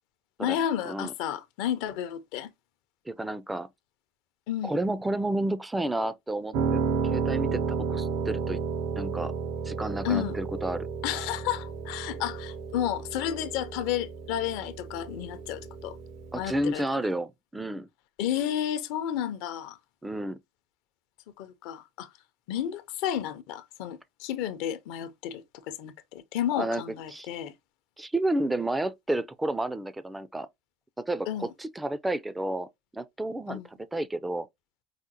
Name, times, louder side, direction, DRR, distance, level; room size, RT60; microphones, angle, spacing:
voice 1, 0.4-2.5 4.5-4.8 10.0-10.3 11.0-16.0 16.3-17.0 18.2-19.8 21.4-22.1 22.5-27.5 31.3-31.5 33.5-33.7, left 10 dB, 70° left, 0.5 m, -32 dB
voice 2, 3.1-3.7 4.6-8.6 9.0-9.3 9.6-10.9 16.3-17.9 20.0-20.4 26.6-26.8 27.1-27.3 28.0-30.5 31.0-32.7 32.9-34.5, right 1 dB, 10° right, 0.3 m, -31 dB
Piano, 6.5-16.6, right 5 dB, 65° right, 0.5 m, -32 dB
4.9 x 2.0 x 2.8 m
supercardioid pair, 100°, 0 cm